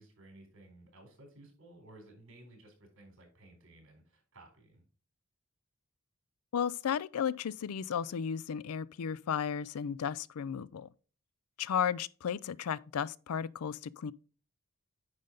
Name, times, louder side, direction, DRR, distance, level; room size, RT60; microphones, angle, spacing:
voice 1, 0.0-4.8, right 1 dB, 60° right, 3.7 m, -56 dB
voice 2, 6.5-10.9 11.6-14.1, left 7 dB, 85° left, 0.4 m, -34 dB
9.6 x 5.1 x 3.9 m
head